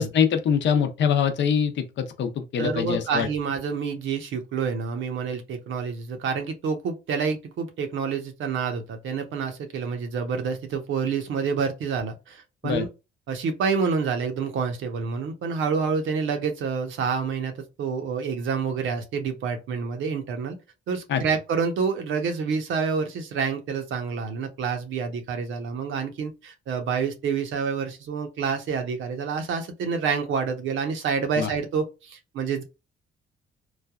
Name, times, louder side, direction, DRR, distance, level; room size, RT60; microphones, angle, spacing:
voice 1, 0.0-3.3 12.6-12.9 21.1-21.2 31.4-31.5, left 7 dB, 65° left, 0.6 m, -23 dB
voice 2, 2.6-12.9 13.3-17.5 17.8-20.6 20.9-32.6, right 5 dB, 75° right, 0.8 m, -28 dB
3.2 x 2.2 x 2.3 m
cardioid pair, 90°, 20 cm